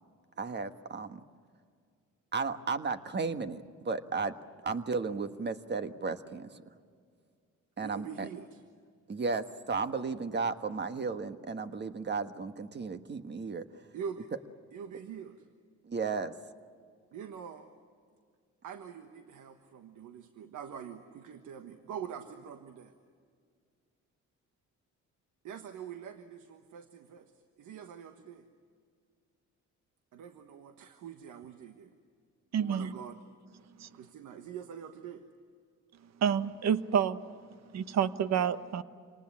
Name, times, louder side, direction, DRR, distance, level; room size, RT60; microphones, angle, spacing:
voice 1, 0.4-1.2 2.3-4.3 4.6-6.6 7.8-8.3 9.1-13.6 15.8-16.3, right 4 dB, 35° right, 9 dB, 1.5 m, -34 dB
voice 2, 7.8-8.6 13.9-14.3 14.7-15.4 17.1-17.7 18.6-22.9 25.4-27.3 27.6-28.5 30.1-31.9 32.6-33.2 33.9-35.2, right 7 dB, 80° right, 7 dB, 1.4 m, -44 dB
voice 3, 32.5-32.9 33.8-33.9 36.2-37.2 37.7-38.8, right 8 dB, 60° right, 13 dB, 1.1 m, -28 dB
27.0 x 19.5 x 9.9 m, 2.1 s
cardioid pair, 90°, 30 cm